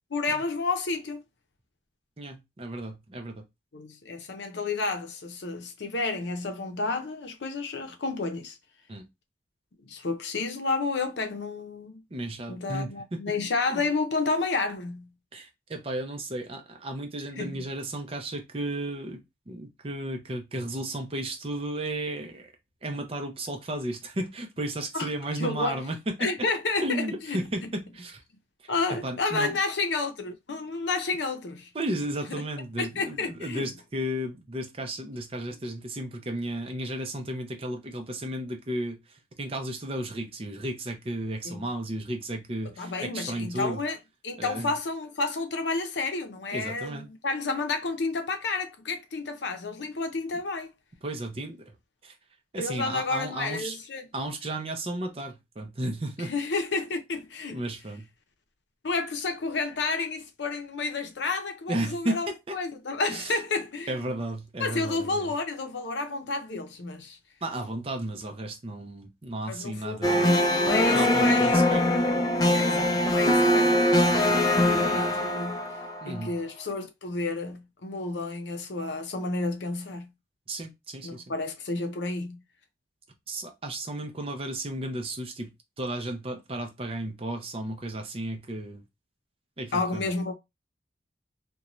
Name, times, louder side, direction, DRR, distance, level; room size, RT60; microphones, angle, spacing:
voice 1, 0.1-1.2 3.7-8.6 9.8-12.0 12.5-15.1 17.4-17.5 24.9-25.1 25.4-25.8 26.2-27.4 28.7-31.7 32.3-32.4 32.8-33.7 41.4-41.6 42.6-44.0 44.2-50.7 52.6-54.1 56.2-57.6 58.8-64.0 64.6-67.2 69.5-71.6 72.5-75.6 76.1-80.1 81.0-82.4 89.7-90.3, left 3 dB, 80° left, 0.6 m, -31 dB
voice 2, 2.2-3.4 8.9-9.0 12.1-13.2 13.7-13.8 15.3-19.2 19.5-22.5 22.8-26.3 26.8-28.2 28.6-29.6 31.7-43.8 44.4-44.7 46.5-47.1 51.0-51.7 52.0-52.1 52.5-53.8 54.1-56.3 57.5-58.1 61.7-62.2 62.5-62.6 63.1-63.3 63.9-65.3 67.4-70.4 70.9-71.8 76.0-76.4 80.5-81.2 83.3-85.5 85.8-88.8 89.6-90.1, right 1 dB, 30° right, 0.5 m, -34 dB
sound 1, 70.0-76.3, left 1 dB, 20° left, 0.4 m, -22 dB
2.6 x 2.2 x 2.9 m
head